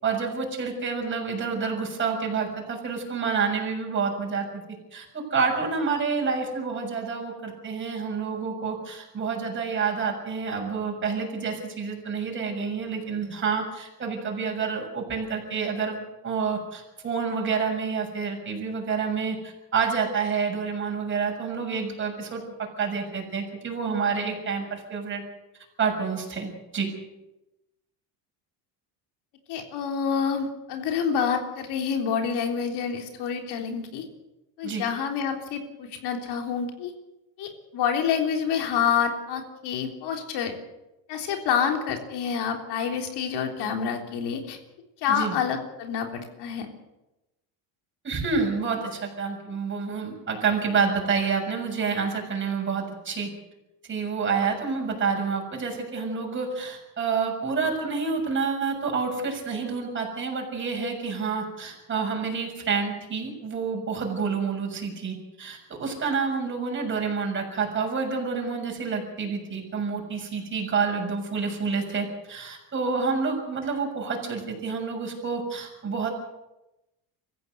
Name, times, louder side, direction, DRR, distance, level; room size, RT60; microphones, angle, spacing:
voice 1, 0.0-4.5 4.9-25.2 25.8-26.9 34.6-34.8 45.1-45.3 48.0-53.3 53.9-76.1, right 5 dB, 25° right, 1 dB, 6.9 m, -28 dB
voice 2, 29.5-34.1 34.6-36.9 37.4-40.6 41.1-44.6 45.0-46.7, left 7 dB, 55° left, 4 dB, 3.6 m, -28 dB
25.0 x 15.0 x 8.0 m, 0.97 s
cardioid pair, 150°, 46 cm